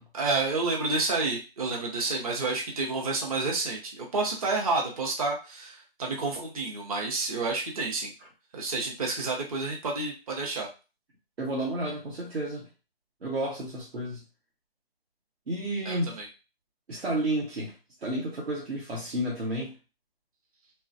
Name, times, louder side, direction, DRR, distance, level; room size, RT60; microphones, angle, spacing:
voice 1, 0.1-8.1 8.5-10.7 15.9-16.3, right 3 dB, 35° right, -1 dB, 0.7 m, -29 dB
voice 2, 11.4-12.7 13.2-14.2 15.5-16.2 16.9-17.7 18.0-19.7, right 1 dB, 85° right, -4 dB, 1.1 m, -31 dB
3.1 x 2.3 x 2.5 m, 0.31 s
hypercardioid pair, 165°, 31 cm